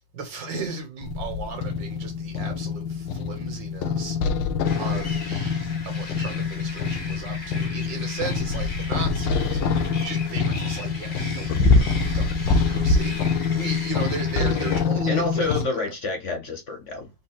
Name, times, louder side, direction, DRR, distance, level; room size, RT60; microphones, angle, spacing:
voice 1, 0.1-4.5 4.8-15.9, right 5 dB, 75° right, 2.1 m, -36 dB
sound 1, 1.0-15.6, left 4 dB, 85° left, 1.4 m, -25 dB
sound 2, 4.6-14.8, left 2 dB, 35° left, 1.1 m, -39 dB
voice 2, 15.1-17.1, left 3 dB, 60° left, 0.8 m, -28 dB
4.0 x 3.4 x 3.7 m
omnidirectional pair, 2.0 m